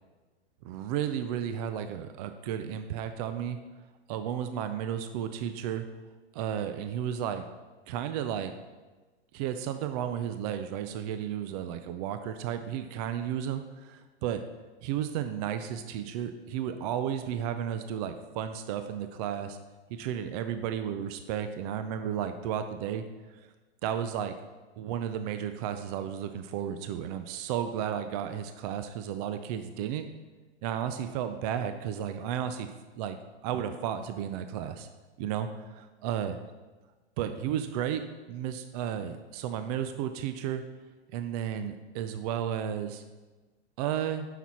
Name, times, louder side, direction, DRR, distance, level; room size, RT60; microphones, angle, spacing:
voice 1, 0.6-3.6 4.1-5.9 6.3-7.5 7.9-8.5 9.3-14.4 14.8-19.6 19.9-23.0 23.8-24.3 24.8-30.1 30.6-32.7 33.0-33.2 33.4-34.9 35.2-36.4 37.2-38.0 38.3-40.6 41.1-43.0 43.8-44.3, right 9 dB, 35° right, 9 dB, 0.4 m, -33 dB
7.1 x 6.0 x 4.1 m, 1.2 s
hypercardioid pair, 130°, 34 cm